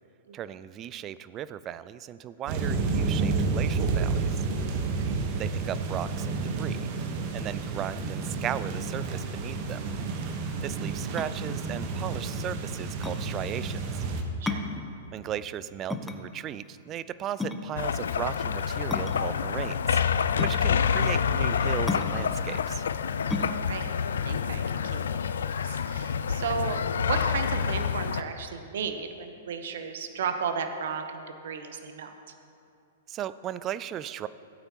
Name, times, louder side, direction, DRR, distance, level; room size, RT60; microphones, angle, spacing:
voice 1, 0.3-4.4 5.3-6.9 7.3-9.9 10.6-14.0 15.1-20.0 20.3-22.8 33.1-34.3, right 10 dB, 30° right, 16 dB, 0.3 m, -36 dB
sound 1, 2.5-14.2, right 4 dB, 45° right, 1.1 m, -30 dB
sound 2, 11.2-25.4, left 3 dB, 10° left, 0.7 m, -36 dB
sound 3, 17.8-28.2, left 7 dB, 70° left, 0.3 m, -27 dB
voice 2, 23.5-25.2 25.6-26.8 27.0-32.1, right 6 dB, 65° right, 7 dB, 0.8 m, -34 dB
16.0 x 8.8 x 2.9 m, 2.5 s
figure-of-eight pair, 110°, 0 cm